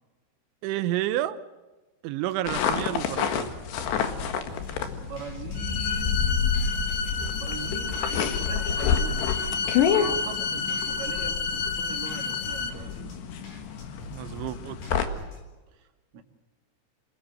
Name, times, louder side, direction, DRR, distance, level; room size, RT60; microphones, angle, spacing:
voice 1, 0.6-1.4 2.0-3.6 14.1-14.9, right 14 dB, 75° right, 12 dB, 3.2 m, -30 dB
sound 1, 2.5-15.1, left 7 dB, 65° left, 3.6 m, -29 dB
sound 2, 4.5-15.5, left 3 dB, 45° left, 5.2 m, -45 dB
voice 2, 4.5-6.2 7.4-9.3 9.8-13.1 15.7-15.9 16.1-16.2, right 6 dB, 45° right, 4 dB, 2.9 m, -41 dB
sound 3, 5.6-12.7, left 5 dB, 85° left, 4.4 m, -31 dB
27.5 x 20.0 x 7.7 m, 1.2 s
omnidirectional pair, 5.8 m